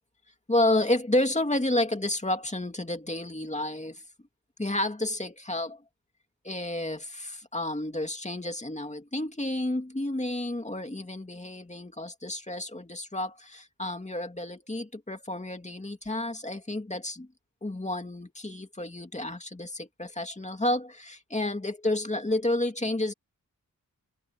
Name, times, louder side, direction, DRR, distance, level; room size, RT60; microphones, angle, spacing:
voice 1, 0.5-4.0 4.6-5.8 6.4-17.3 17.6-23.1, left 1 dB, 20° left, 2.5 m, -30 dB
wide cardioid pair, 85°, 33 cm